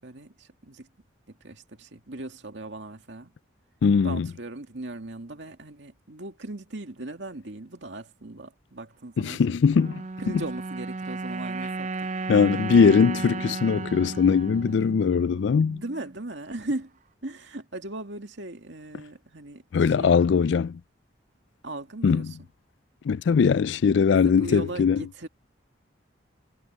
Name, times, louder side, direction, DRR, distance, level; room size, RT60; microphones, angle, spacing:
voice 1, 0.0-0.9 1.4-3.3 4.0-9.4 10.2-12.1 14.8-15.0 15.7-16.9 17.2-20.2 21.6-22.4 24.2-25.3, right 2 dB, 70° right, 2.2 m, -38 dB
voice 2, 3.8-4.3 9.2-10.0 10.3-10.4 12.3-15.8 19.7-20.8 22.0-22.3 23.1-25.0, left 6 dB, 70° left, 0.3 m, -21 dB
sound 1, 9.7-16.1, right 3 dB, 40° right, 0.5 m, -34 dB
head